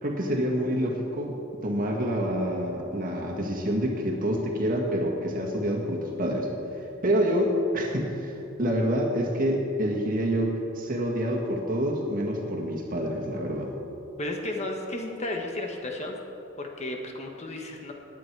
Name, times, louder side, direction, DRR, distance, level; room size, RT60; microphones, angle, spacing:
voice 1, 0.0-6.5 7.0-8.3 8.6-13.7, equal, 40° right, 0 dB, 1.8 m, -27 dB
voice 2, 14.2-16.1 16.6-17.9, left 1 dB, 30° left, 2 dB, 1.3 m, -33 dB
18.5 x 9.3 x 4.7 m, 2.8 s
head